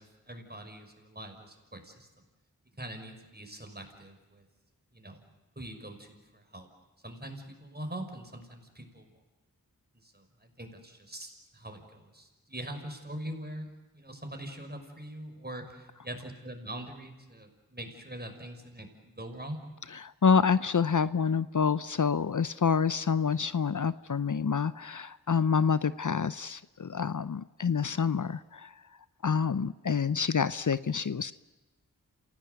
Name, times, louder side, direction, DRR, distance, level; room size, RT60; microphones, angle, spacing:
voice 1, 0.0-2.1 2.8-4.4 4.9-5.2 5.6-6.7 7.0-9.1 10.0-13.7 13.9-19.6, right 1 dB, 25° right, 5 dB, 6.0 m, -43 dB
voice 2, 19.9-28.8 29.2-31.3, left 6 dB, 55° left, 16 dB, 0.7 m, -27 dB
28.0 x 17.5 x 9.5 m, 1.1 s
wide cardioid pair, 45°, 36 cm